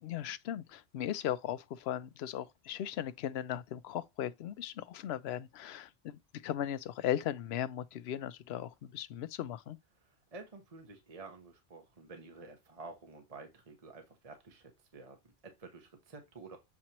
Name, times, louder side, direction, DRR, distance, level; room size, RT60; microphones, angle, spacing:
voice 1, 0.0-9.8, left 11 dB, 75° left, 0.8 m, -37 dB
voice 2, 10.0-16.6, right 3 dB, 35° right, 1.0 m, -51 dB
7.4 x 4.4 x 2.9 m
omnidirectional pair, 1.1 m